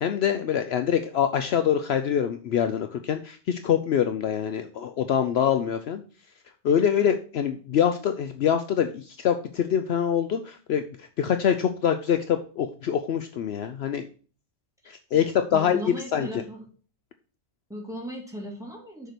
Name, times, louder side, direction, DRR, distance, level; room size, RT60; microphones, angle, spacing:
voice 1, 0.0-6.0 6.6-14.1 14.9-15.8 16.1-16.3, left 8 dB, 65° left, 8 dB, 0.8 m, -25 dB
voice 2, 14.8-16.6 17.7-19.1, equal, 5° right, -2 dB, 2.4 m, -37 dB
6.6 x 5.0 x 6.0 m, 0.40 s
omnidirectional pair, 1.2 m